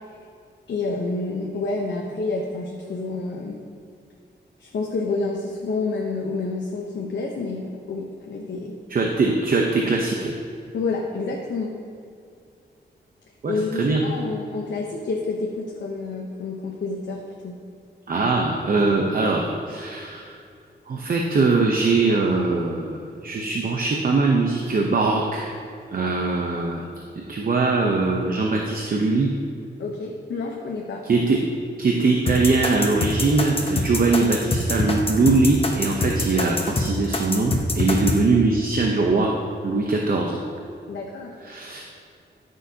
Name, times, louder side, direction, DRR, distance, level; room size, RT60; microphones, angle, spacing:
voice 1, 0.7-3.6 4.6-8.8 10.7-11.7 13.5-17.6 29.8-31.0 40.9-41.4, left 3 dB, 90° left, -1 dB, 0.9 m, -29 dB
voice 2, 8.9-10.3 13.4-14.0 18.1-20.3 20.9-25.5 25.9-26.8 27.1-29.3 31.0-31.4 31.8-39.3 39.6-40.4 41.4-41.8, right 3 dB, 50° right, 0 dB, 0.8 m, -21 dB
sound 1, 32.3-38.2, left 3 dB, 30° left, 0.9 m, -24 dB
14.0 x 6.4 x 2.8 m, 2.4 s
wide cardioid pair, 120°, 18 cm